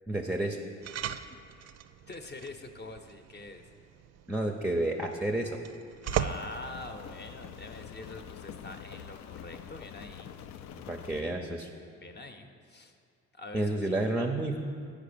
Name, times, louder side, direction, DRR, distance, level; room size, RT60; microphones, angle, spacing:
voice 1, 0.1-0.6 4.3-5.6 10.9-11.7 13.5-14.6, right 1 dB, 5° right, 3 dB, 0.5 m, -30 dB
sound 1, 0.8-8.2, right 9 dB, 60° right, 0.4 m, -39 dB
voice 2, 2.1-3.7 6.1-10.3 11.9-12.9 13.3-13.7, left 2 dB, 35° left, 5 dB, 0.8 m, -45 dB
Rain, 6.1-11.2, left 9 dB, 70° left, 0.5 m, -46 dB
8.9 x 5.1 x 6.7 m, 2.3 s
cardioid pair, 90°, 30 cm